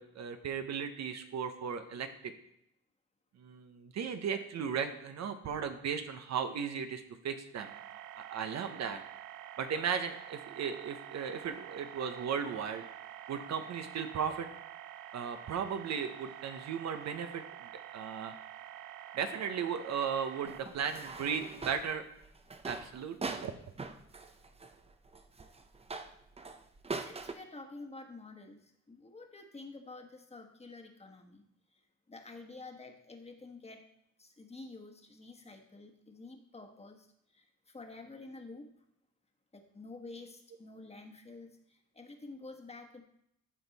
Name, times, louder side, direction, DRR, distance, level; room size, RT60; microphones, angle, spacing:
voice 1, 0.0-2.3 3.4-7.7 8.1-9.0 9.6-12.8 13.3-14.5 15.1-18.3 19.1-22.0 22.6-23.5, right 7 dB, 60° right, 8 dB, 0.9 m, -36 dB
sound 1, 7.6-20.6, right 12 dB, 80° right, 0.5 m, -48 dB
sound 2, 20.5-27.3, right 3 dB, 20° right, 0.7 m, -42 dB
voice 2, 27.0-31.4 31.7-31.8 32.1-33.9 34.2-37.1 37.3-38.7 39.5-43.0, left 3 dB, 20° left, 4 dB, 1.3 m, -49 dB
13.0 x 4.5 x 4.1 m, 0.75 s
cardioid pair, 90°, 30 cm